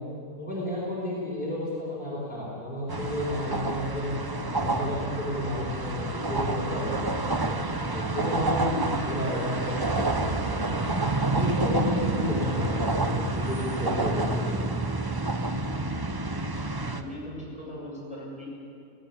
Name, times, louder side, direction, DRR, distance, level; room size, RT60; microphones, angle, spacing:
voice 1, 0.4-4.1 4.5-7.6 7.9-10.8 11.3-14.7, left 1 dB, 30° left, -6 dB, 4.7 m, -32 dB
sound 1, 2.9-17.0, right 2 dB, 25° right, 0.5 m, -28 dB
voice 2, 16.7-18.5, equal, 5° right, -6 dB, 7.4 m, -39 dB
20.0 x 16.5 x 8.2 m, 2.5 s
omnidirectional pair, 1.7 m